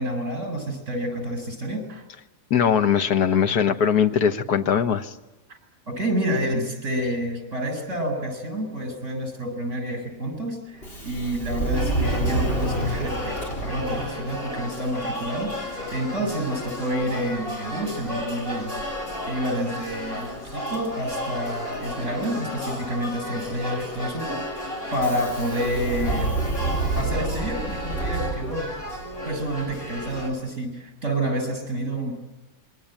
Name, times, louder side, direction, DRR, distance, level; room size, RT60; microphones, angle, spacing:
voice 1, 0.0-2.0 5.5-5.6 5.9-13.3 13.6-18.8 19.2-26.4 26.9-28.7 29.2-32.1, right 1 dB, 50° right, 6 dB, 7.8 m, -29 dB
voice 2, 2.5-5.1, left 8 dB, 85° left, 7 dB, 1.8 m, -21 dB
Subway metro underground, 10.7-29.1, right 2 dB, 40° left, 4.3 m, -31 dB
sound 1, 11.7-30.3, left 1 dB, 65° left, 7.4 m, -34 dB
27.0 x 23.0 x 8.9 m, 1.1 s
omnidirectional pair, 1.6 m